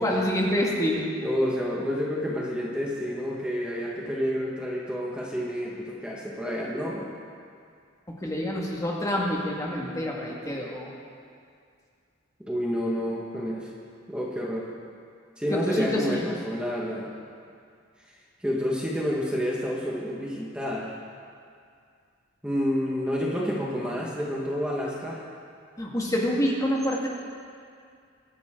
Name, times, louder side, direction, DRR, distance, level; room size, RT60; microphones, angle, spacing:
voice 1, 0.0-1.1 8.2-10.9 15.5-16.3 25.8-27.1, equal, 15° left, -3 dB, 1.9 m, -27 dB
voice 2, 1.2-7.1 12.5-13.7 14.1-14.7 15.4-17.1 18.4-20.9 22.4-25.2, equal, 5° right, -4 dB, 1.7 m, -29 dB
23.5 x 11.0 x 3.9 m, 2.3 s
head